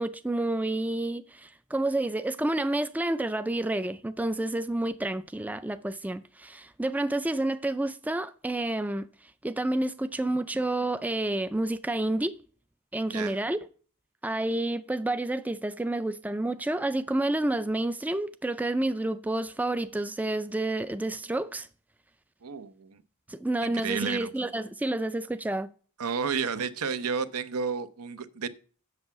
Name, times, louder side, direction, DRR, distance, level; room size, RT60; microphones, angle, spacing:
voice 1, 0.0-9.1 9.4-12.4 12.9-13.6 14.2-21.7 23.3-25.7, right 1 dB, 5° right, 0.4 m, -29 dB
voice 2, 22.4-23.0 23.6-24.5 26.0-28.5, right 6 dB, 80° right, 0.7 m, -32 dB
7.9 x 6.9 x 5.8 m
head